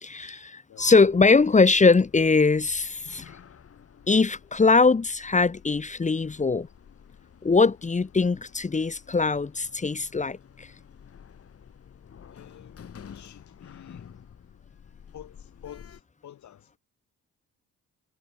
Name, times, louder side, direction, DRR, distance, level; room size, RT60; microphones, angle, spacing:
voice 1, 0.0-3.3 4.1-6.7 7.4-10.7, left 4 dB, 25° left, 1.4 m, -21 dB
Sliding door, 0.8-16.0, left 7 dB, 50° left, 4.1 m, -50 dB
voice 2, 12.3-14.2 15.1-16.8, left 11 dB, 70° left, 6.8 m, -49 dB
cardioid pair, 90°, 30 cm